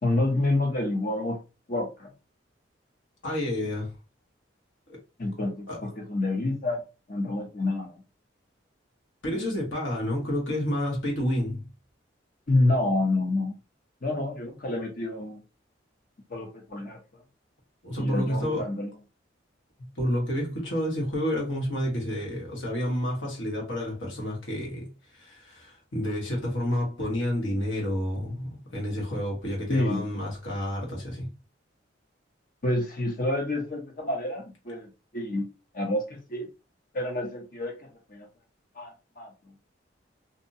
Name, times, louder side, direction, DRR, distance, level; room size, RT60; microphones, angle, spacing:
voice 1, 0.0-1.4 1.7-2.1 5.2-6.8 7.1-8.0 12.5-13.6 14.0-15.4 16.3-17.0 18.0-18.9 29.7-30.0 32.6-35.5 35.7-36.5 36.9-38.3 38.8-39.3, left 2 dB, 45° left, 0.8 m, -28 dB
voice 2, 3.2-3.9 4.9-5.0 5.7-5.8 9.2-11.7 17.8-18.6 20.0-24.9 25.2-31.3, equal, 80° left, 1.3 m, -29 dB
2.7 x 2.1 x 2.6 m
head